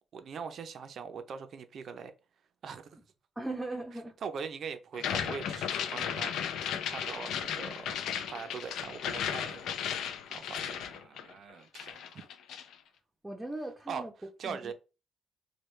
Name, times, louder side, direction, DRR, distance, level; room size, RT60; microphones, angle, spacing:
voice 1, 0.1-2.1 2.6-3.0 4.2-7.9 8.3-9.8 10.3-12.3 13.9-14.0 14.4-14.7, right 6 dB, 60° right, 0.5 m, -42 dB
voice 2, 3.4-4.2 13.2-14.1 14.4-14.7, right 2 dB, 10° right, 0.6 m, -38 dB
sound 1, 4.9-11.5 11.8-12.7, left 8 dB, 80° left, 0.4 m, -35 dB
3.2 x 2.2 x 3.1 m
cardioid pair, 90°, 0 cm